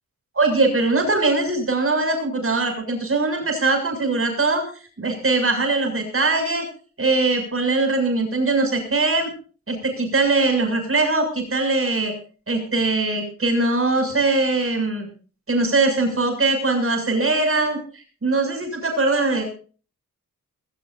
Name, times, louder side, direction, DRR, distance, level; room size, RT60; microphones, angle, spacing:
voice 1, 0.4-6.7 7.0-9.3 9.7-12.1 12.5-15.1 15.5-19.4, right 3 dB, 40° right, 5 dB, 7.1 m, -21 dB
20.5 x 18.5 x 2.7 m, 0.39 s
wide cardioid pair, 110°, 32 cm